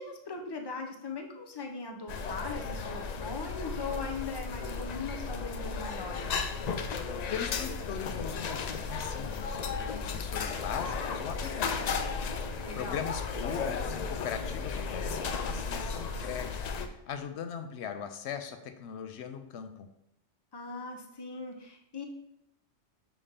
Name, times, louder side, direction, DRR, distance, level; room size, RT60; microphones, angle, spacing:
voice 1, 0.0-6.4 12.6-13.0 20.5-22.1, left 4 dB, 25° left, 3 dB, 0.6 m, -39 dB
sound 1, 2.1-16.9, left 5 dB, 85° left, 0.3 m, -34 dB
voice 2, 7.3-9.6 9.9-12.2 12.5-19.9, left 7 dB, 70° left, 9 dB, 0.8 m, -40 dB
5.0 x 3.3 x 5.6 m, 0.82 s
omnidirectional pair, 1.3 m